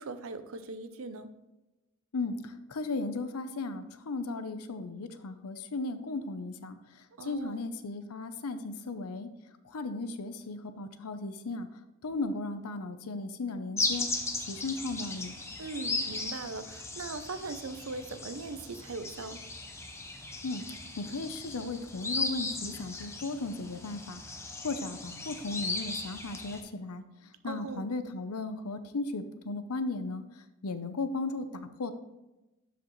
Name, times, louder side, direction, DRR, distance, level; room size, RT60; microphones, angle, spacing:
voice 1, 0.0-1.3 7.2-7.6 15.6-19.4 27.4-27.9, right 3 dB, 70° right, 10 dB, 0.6 m, -40 dB
voice 2, 2.7-6.8 7.2-9.3 9.7-11.7 12.0-14.1 14.4-15.3 20.4-20.6 21.0-24.2 24.6-27.0 27.4-30.2 30.6-31.9, left 3 dB, 90° left, 10 dB, 0.7 m, -36 dB
sound 1, 13.8-26.6, left 3 dB, 10° left, 0.6 m, -37 dB
12.0 x 5.1 x 3.1 m, 1.0 s
head